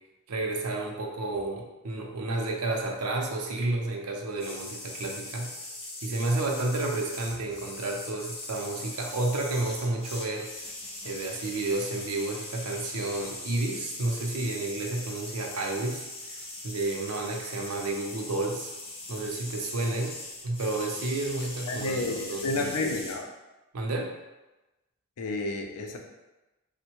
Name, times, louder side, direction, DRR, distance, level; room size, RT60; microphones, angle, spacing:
voice 1, 0.3-5.5 6.0-10.5 11.0-18.7 19.1-20.1 20.4-22.9 23.7-24.1, right 2 dB, 85° right, 1 dB, 0.5 m, -31 dB
sound 1, 4.4-23.1, left 2 dB, 25° left, 0.5 m, -41 dB
voice 2, 21.7-23.3 25.2-26.0, left 2 dB, 90° left, 3 dB, 0.4 m, -31 dB
3.4 x 2.1 x 2.9 m, 1.1 s
head